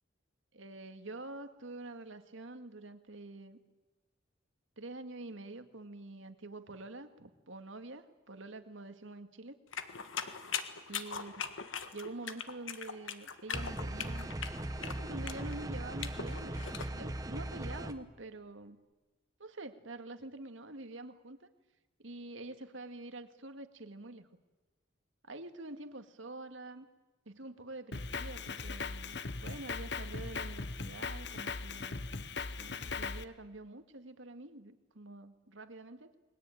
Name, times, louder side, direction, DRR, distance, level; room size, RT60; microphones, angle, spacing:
voice 1, 0.5-3.6 4.8-9.6 10.9-11.4 11.9-14.3 14.8-18.8 19.4-21.5 22.0-24.3 25.2-26.9 27.3-32.1 32.6-36.1, right 2 dB, 80° right, 8 dB, 1.9 m, -46 dB
sound 1, 9.7-16.9, left 7 dB, 80° left, 1.6 m, -40 dB
sound 2, 13.5-17.9, right 1 dB, 15° right, 1.1 m, -39 dB
Drum kit, 27.9-33.2, left 4 dB, 60° left, 1.0 m, -39 dB
29.5 x 21.0 x 9.1 m, 1.2 s
head